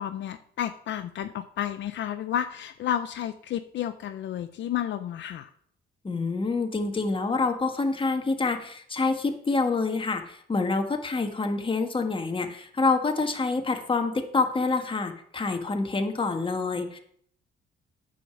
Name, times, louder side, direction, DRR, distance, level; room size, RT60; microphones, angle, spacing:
voice 1, 0.0-5.5, left 10 dB, 70° left, 10 dB, 0.6 m, -31 dB
voice 2, 6.0-17.0, left 3 dB, 25° left, 5 dB, 1.5 m, -27 dB
9.3 x 5.0 x 7.0 m, 0.64 s
cardioid pair, 90°, 20 cm